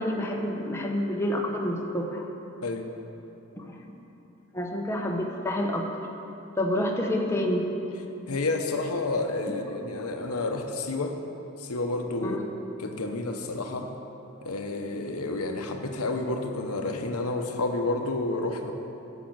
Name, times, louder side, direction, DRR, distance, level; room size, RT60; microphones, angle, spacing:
voice 1, 0.0-2.2 3.6-3.8 4.5-5.9 6.6-7.6 9.5-9.6 12.2-12.4, left 1 dB, 10° left, 0 dB, 0.8 m, -28 dB
voice 2, 8.3-11.2 11.6-12.4 12.8-13.9 14.4-18.7, left 2 dB, 90° left, 4 dB, 0.9 m, -30 dB
8.6 x 7.1 x 7.9 m, 3.0 s
head